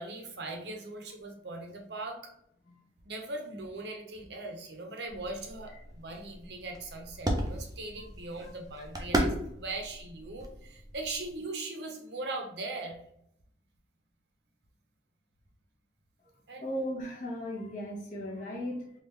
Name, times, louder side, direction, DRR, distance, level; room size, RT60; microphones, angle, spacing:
voice 1, 0.0-2.3 3.0-13.0 16.5-16.6, right 2 dB, 65° right, 2 dB, 0.7 m, -40 dB
sound 1, 5.1-11.4, right 1 dB, 20° right, 0.5 m, -36 dB
voice 2, 16.6-18.9, equal, 45° left, -2 dB, 0.9 m, -37 dB
3.5 x 2.4 x 3.2 m, 0.72 s
head